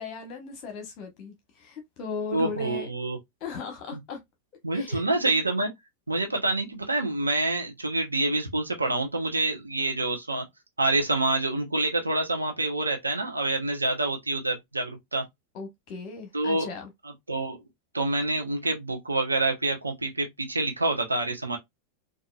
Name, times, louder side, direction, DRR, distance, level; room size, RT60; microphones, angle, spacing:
voice 1, 0.0-2.9 3.4-4.2 4.7-5.0 15.5-16.9, left 5 dB, 40° left, 1.0 m, -37 dB
voice 2, 2.3-3.2 4.6-5.7 6.1-10.4 10.8-15.2 16.3-16.7 17.3-17.6 17.9-21.6, right 2 dB, 80° right, 0.7 m, -27 dB
4.1 x 2.5 x 2.3 m
figure-of-eight pair, 90°, 0 cm